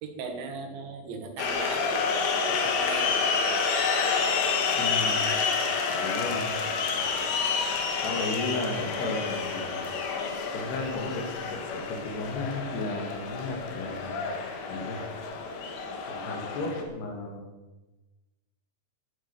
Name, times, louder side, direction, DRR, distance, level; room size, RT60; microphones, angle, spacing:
voice 1, 0.0-3.3, right 4 dB, 90° right, 5 dB, 4.0 m, -39 dB
sound 1, 1.4-16.8, left 5 dB, 90° left, 3.7 m, -29 dB
voice 2, 4.8-5.3 5.9-6.5 8.0-9.7 10.5-14.2 14.7-15.0 16.1-17.4, left 2 dB, 70° left, 2 dB, 4.4 m, -34 dB
13.0 x 9.2 x 7.0 m, 1.1 s
omnidirectional pair, 5.0 m